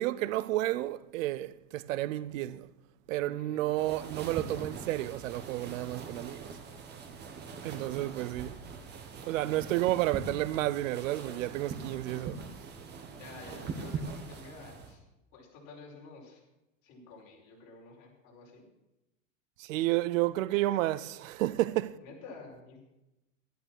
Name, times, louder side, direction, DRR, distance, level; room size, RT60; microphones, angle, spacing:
voice 1, 0.0-2.7 3.1-6.5 7.6-8.6 9.3-12.4 19.6-22.0, right 16 dB, 75° right, 0.7 m, -31 dB
voice 2, 3.0-4.1 13.1-15.0 15.3-16.4 16.8-18.7 22.0-22.8, left 3 dB, 45° left, 5.1 m, -50 dB
sound 1, 3.8-14.9, right 5 dB, 25° right, 1.6 m, -42 dB
12.0 x 11.5 x 6.1 m
supercardioid pair, 145°, 39 cm